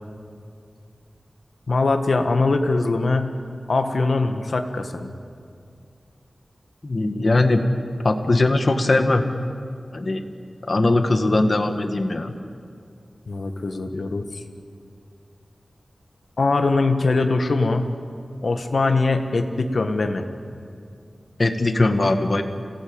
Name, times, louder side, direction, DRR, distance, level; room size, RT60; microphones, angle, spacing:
voice 1, 1.7-3.4 3.7-5.2 13.3-14.4 16.4-17.9 18.4-20.2, left 3 dB, 70° left, 6 dB, 1.6 m, -22 dB
voice 2, 6.8-7.7 8.0-9.3 9.9-10.2 10.6-12.3 21.4-22.4, left 2 dB, 50° left, 7 dB, 1.6 m, -20 dB
26.0 x 18.0 x 8.8 m, 2.4 s
wide cardioid pair, 90°, 0 cm